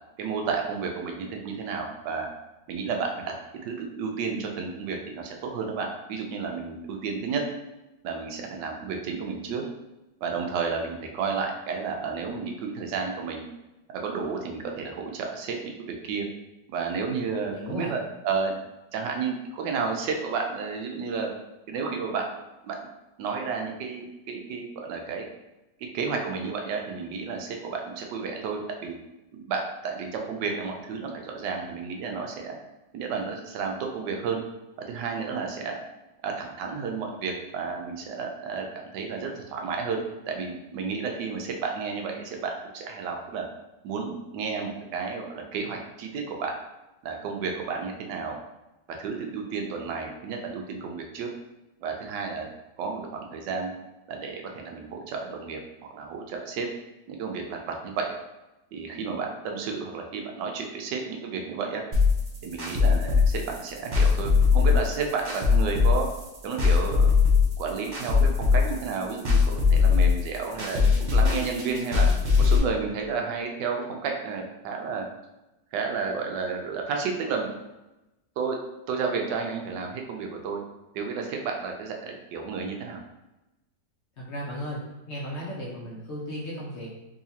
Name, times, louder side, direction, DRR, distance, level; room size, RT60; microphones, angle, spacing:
voice 1, 0.2-2.3 2.7-3.3 3.6-7.4 8.0-9.6 10.2-13.5 14.0-15.7 16.0-16.3 16.7-18.5 18.9-21.3 21.7-22.3 22.6-22.8 23.2-25.3 25.9-29.0 29.3-32.5 32.9-34.4 34.9-35.8 36.2-38.7 38.9-43.4 43.8-46.5 47.0-48.4 49.0-51.3 51.8-52.5 52.8-53.7 54.1-55.6 55.9-56.7 57.1-58.1 58.7-61.8 62.4-66.1 66.4-67.1 67.6-72.1 72.4-75.1 75.7-77.5 78.4-78.6 78.9-80.6 80.9-83.0, right 5 dB, 80° right, 2 dB, 1.2 m, -31 dB
voice 2, 17.1-17.9 84.2-84.8 85.1-86.9, equal, 55° left, -5 dB, 0.8 m, -35 dB
sound 1, 61.9-72.6, left 5 dB, 60° right, 0.4 m, -21 dB
3.8 x 2.8 x 2.7 m, 0.99 s
omnidirectional pair, 1.9 m